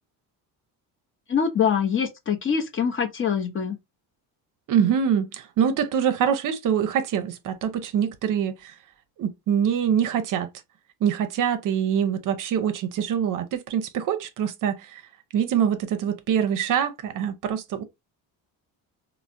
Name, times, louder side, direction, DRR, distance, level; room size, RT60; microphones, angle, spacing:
voice 1, 1.3-3.8, left 7 dB, 30° left, 0.6 m, -24 dB
voice 2, 4.7-8.7 9.2-10.5 11.0-15.0 15.3-17.8, right 8 dB, 55° right, 0.6 m, -24 dB
3.2 x 2.1 x 2.5 m
cardioid pair, 95°, 39 cm